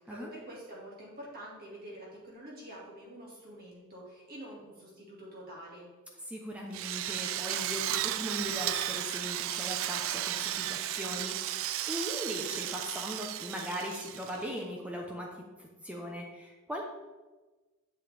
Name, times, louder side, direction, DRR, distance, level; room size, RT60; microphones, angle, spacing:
voice 1, 0.1-5.9, right 1 dB, 45° right, -4 dB, 2.1 m, -47 dB
voice 2, 6.3-15.3 15.6-16.8, equal, 5° right, -1 dB, 0.7 m, -39 dB
Drill, 6.7-14.6, right 13 dB, 65° right, 0.3 m, -34 dB
7.9 x 6.2 x 3.4 m, 1.2 s
head